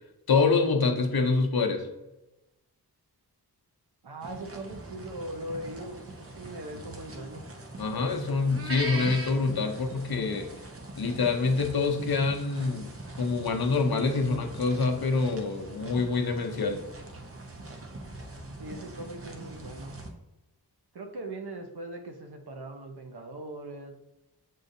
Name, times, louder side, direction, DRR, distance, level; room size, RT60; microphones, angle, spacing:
voice 1, 0.3-1.9 7.8-10.5 11.0-16.8, left 4 dB, 65° left, 5 dB, 0.7 m, -26 dB
voice 2, 4.0-7.5 18.6-20.0 20.9-23.9, right 1 dB, 70° right, 4 dB, 0.8 m, -40 dB
sound 1, 4.2-20.1, right 2 dB, 35° right, 0.7 m, -42 dB
7.4 x 2.5 x 2.6 m, 0.96 s
wide cardioid pair, 65°, 40 cm